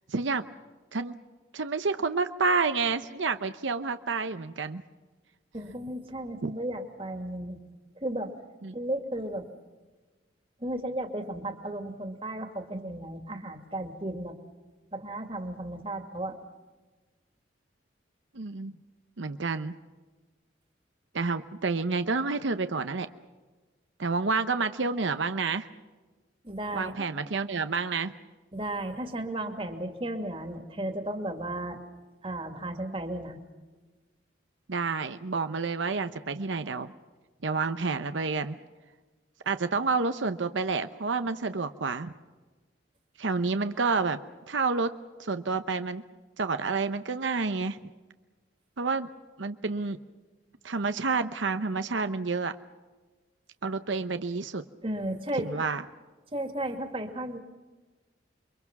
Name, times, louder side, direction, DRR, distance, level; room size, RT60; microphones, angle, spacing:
voice 1, 0.1-0.4 0.9-1.1 1.5-4.8 6.4-6.5 8.6-8.8 18.3-18.7 19.2-19.7 21.1-23.1 24.0-25.7 26.7-28.1 34.7-36.9 37.4-38.5 39.5-42.1 43.2-44.2 44.5-44.9 45.2-46.0 46.4-47.8 48.8-49.1 49.4-50.0 50.6-52.5 53.6-54.6 55.4-55.8, right 4 dB, 85° right, 9 dB, 0.9 m, -29 dB
voice 2, 5.5-7.6 8.0-8.3 8.7-9.5 10.6-14.3 14.9-16.4 26.4-27.1 28.5-31.8 32.2-33.4 54.8-55.5 56.3-57.4, right 1 dB, 30° right, 5 dB, 2.3 m, -34 dB
28.5 x 23.5 x 6.0 m, 1.3 s
head